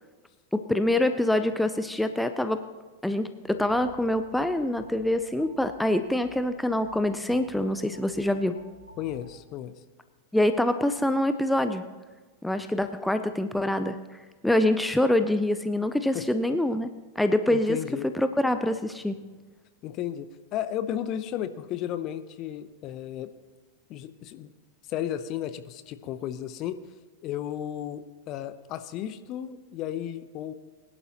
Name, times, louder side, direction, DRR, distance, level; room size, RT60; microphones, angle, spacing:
voice 1, 0.5-2.6 3.0-8.5 10.3-11.8 12.4-16.9 17.2-17.8 18.1-19.2, left 1 dB, 5° left, 9 dB, 0.5 m, -25 dB
sound 1, 3.4-9.3, left 2 dB, 80° left, 2.1 m, -51 dB
voice 2, 9.0-9.7 16.1-16.2 17.5-18.1 19.8-20.3 20.5-23.3 23.9-24.5 24.9-26.8 27.2-30.5, left 11 dB, 40° left, 12 dB, 0.7 m, -34 dB
21.0 x 11.0 x 2.9 m, 1.3 s
figure-of-eight pair, 90°, 0 cm